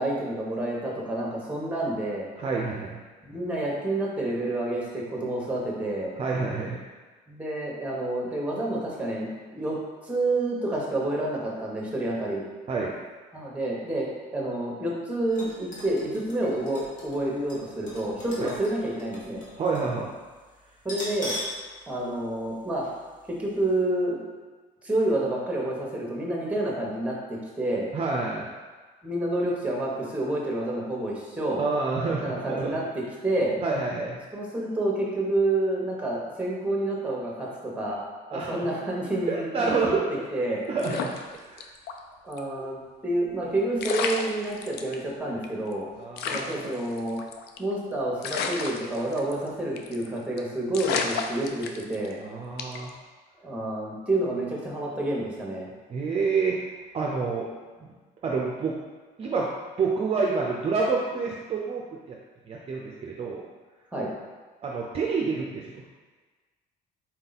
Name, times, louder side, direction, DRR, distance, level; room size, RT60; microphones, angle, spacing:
voice 1, 0.0-2.3 3.3-6.1 7.3-9.8 10.0-12.4 13.3-19.4 20.8-21.4 21.9-22.9 23.4-24.2 24.8-27.9 29.0-31.6 32.2-32.8 33.2-33.6 34.3-38.0 38.3-40.0 40.3-40.6 42.2-45.9 46.3-47.2 47.6-52.2 53.4-55.7 63.9-64.1, right 1 dB, 10° right, -3 dB, 1.1 m, -29 dB
voice 2, 2.4-3.0 6.2-6.8 12.7-12.9 18.4-18.5 19.6-20.1 27.9-28.5 31.6-32.8 33.6-34.2 38.3-38.7 39.3-40.2 40.7-41.7 42.6-42.7 46.0-46.7 52.2-52.9 55.9-56.6 56.9-57.5 57.8-57.9 58.2-58.8 59.2-59.5 59.8-62.2 62.5-63.4 64.6-65.8, right 4 dB, 35° right, -2 dB, 0.5 m, -28 dB
sound 1, 15.3-19.9 20.2-20.3 20.8-21.6 22.0-22.1 22.8-23.0 23.4-23.5, left 1 dB, 50° left, 1.3 m, -39 dB
sound 2, 40.8-42.0 42.3-42.4 43.4-43.5 43.8-44.9 45.4-45.5 45.7-45.8 46.2-47.7 48.2-49.5 49.8-50.1 50.4-50.5 50.7-52.1 52.6-52.9, left 5 dB, 75° left, 0.4 m, -31 dB
4.2 x 2.7 x 4.0 m, 1.4 s
cardioid pair, 110°, 17 cm